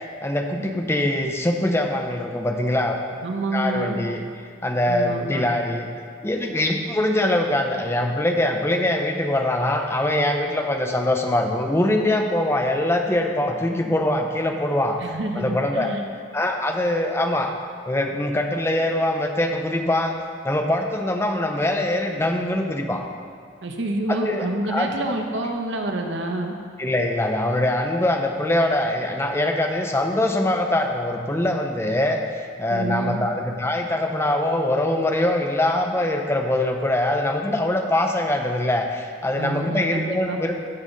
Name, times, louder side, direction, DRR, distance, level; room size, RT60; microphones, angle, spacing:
voice 1, 0.2-3.0 3.5-4.2 4.6-5.9 6.2-15.0 15.4-15.9 16.3-17.5 17.9-20.2 20.4-23.0 24.1-25.0 26.8-40.6, left 1 dB, 15° left, 3 dB, 0.6 m, -23 dB
voice 2, 3.2-4.0 4.9-5.4 15.0-16.0 23.6-26.5 32.7-33.2 39.3-40.4, right 2 dB, 65° right, 3 dB, 0.9 m, -28 dB
15.0 x 5.6 x 4.0 m, 2.2 s
head